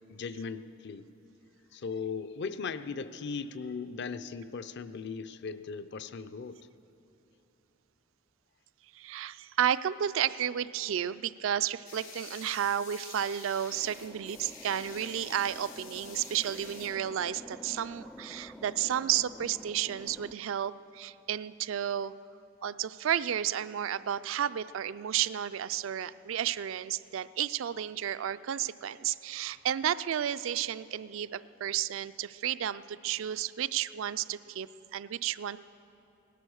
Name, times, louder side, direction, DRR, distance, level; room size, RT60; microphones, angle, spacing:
voice 1, 0.1-1.0 1.7-6.6, left 5 dB, 55° left, 13 dB, 0.5 m, -38 dB
voice 2, 8.9-22.1 22.6-35.6, right 10 dB, 70° right, 14 dB, 0.4 m, -32 dB
sound 1, 11.8-16.9, left 5 dB, 75° left, 3.5 m, -48 dB
sound 2, 13.7-20.3, left 1 dB, 5° left, 0.4 m, -49 dB
17.5 x 12.0 x 6.4 m, 2.9 s
head